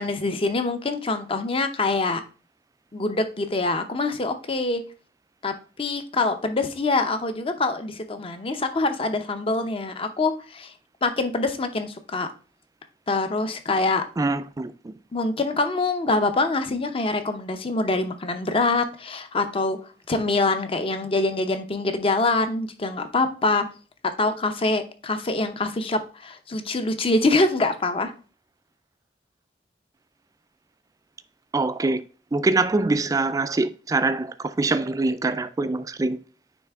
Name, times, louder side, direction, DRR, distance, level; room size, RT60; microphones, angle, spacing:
voice 1, 0.0-2.2 2.9-4.8 5.4-10.7 11.0-12.3 13.1-14.0 15.1-19.8 20.1-23.6 24.2-28.1, left 3 dB, 30° left, 0.6 m, -25 dB
voice 2, 14.2-14.9 31.5-32.0 32.3-36.2, right 3 dB, 20° right, 0.3 m, -24 dB
9.1 x 3.2 x 3.5 m
head